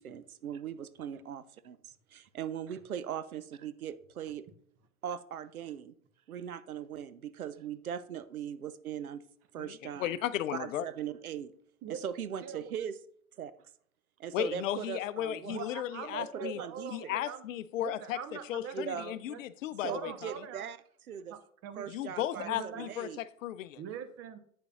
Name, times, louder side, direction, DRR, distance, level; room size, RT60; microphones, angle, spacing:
voice 1, 0.0-4.5 5.0-5.9 6.3-9.2 9.5-10.1 10.5-11.5 11.9-12.9 13.4-13.5 14.2-15.6 16.2-17.1 18.7-19.1 19.8-20.8 21.1-21.3 21.8-23.2, right 8 dB, 85° right, 14 dB, 0.7 m, -40 dB
voice 2, 9.6-10.8 14.3-16.6 16.9-18.2 18.4-20.4 21.9-23.8, left 12 dB, 65° left, 16 dB, 0.6 m, -35 dB
voice 3, 15.5-17.4 17.8-18.8 19.3-19.4 19.9-20.7 21.3-21.9 22.4-22.9 23.8-24.4, right 8 dB, 35° right, 10 dB, 1.0 m, -42 dB
8.7 x 6.7 x 2.4 m, 0.62 s
figure-of-eight pair, 90°, 42 cm